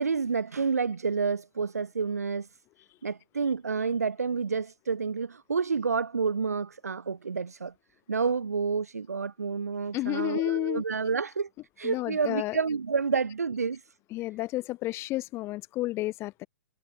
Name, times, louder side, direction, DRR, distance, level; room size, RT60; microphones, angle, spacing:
voice 1, 0.0-2.5 3.0-7.7 8.1-11.5 11.8-13.8, right 5 dB, 80° right, 4.4 m, -29 dB
voice 2, 9.9-10.8 11.8-12.6 14.1-16.5, left 17 dB, 30° left, 5.3 m, -31 dB
hypercardioid pair, 115°, 8 cm